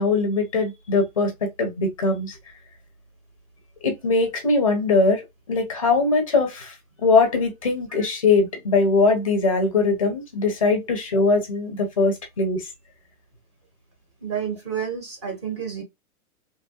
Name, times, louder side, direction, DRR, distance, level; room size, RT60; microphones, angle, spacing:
voice 1, 0.0-2.4 3.8-5.2 5.5-6.7 7.0-12.7, left 3 dB, 25° left, 0.5 m, -21 dB
voice 2, 14.2-15.8, right 7 dB, 20° right, 0.6 m, -30 dB
3.0 x 2.2 x 2.7 m
hypercardioid pair, 175°, 45 cm